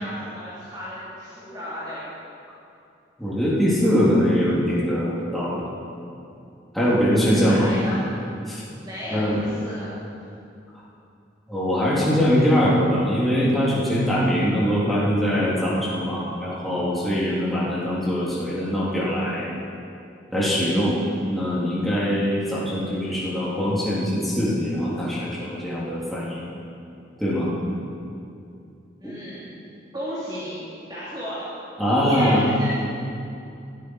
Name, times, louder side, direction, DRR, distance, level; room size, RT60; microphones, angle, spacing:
voice 1, 0.0-2.1 7.4-8.0 8.8-9.9 29.0-29.5 29.9-31.5 32.1-32.7, equal, 25° right, -10 dB, 3.2 m, -34 dB
voice 2, 3.2-5.6 6.7-7.7 8.5-8.6 9.1-9.5 11.5-19.5 20.3-21.0 21.3-26.4 27.2-27.5 29.0-29.1 31.8-32.5, equal, ahead, -9 dB, 3.5 m, -22 dB
21.0 x 13.0 x 4.9 m, 2.6 s
head